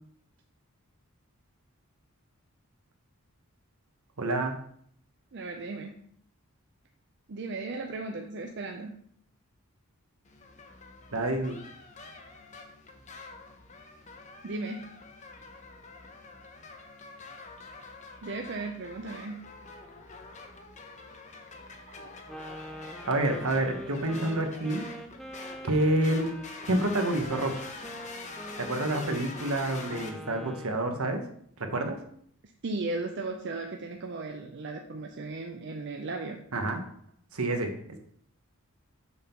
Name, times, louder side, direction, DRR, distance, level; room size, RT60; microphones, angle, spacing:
voice 1, 4.2-4.6 11.1-11.6 23.1-24.8 25.6-26.3 26.7-27.6 28.6-31.2 31.6-32.0 36.5-36.8 37.3-37.7, right 1 dB, 75° right, 5 dB, 1.1 m, -28 dB
voice 2, 5.3-6.0 7.3-8.9 14.4-14.9 18.2-19.4 21.9-22.1 32.6-36.4, right 3 dB, 50° right, 3 dB, 0.5 m, -36 dB
sound 1, 10.2-30.1, left 3 dB, 30° left, 0.7 m, -46 dB
Wind instrument woodwind instrument, 22.3-30.9, equal, ahead, 0.4 m, -44 dB
6.4 x 3.6 x 5.7 m, 0.65 s
head